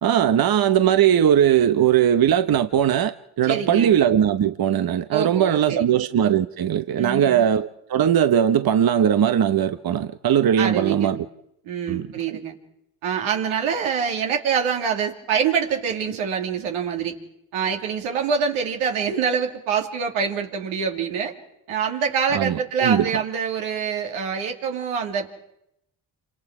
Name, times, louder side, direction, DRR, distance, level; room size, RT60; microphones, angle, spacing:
voice 1, 0.0-3.1 3.4-11.3 11.9-12.1 22.3-23.1, right 9 dB, 45° right, 1.0 m, -19 dB
voice 2, 3.4-3.9 5.1-5.9 7.0-7.5 10.6-11.2 11.6-12.5 13.0-17.2 17.5-21.3 21.7-25.3, right 7 dB, 85° right, 2.6 m, -25 dB
27.5 x 26.0 x 4.9 m
supercardioid pair, 50°, 48 cm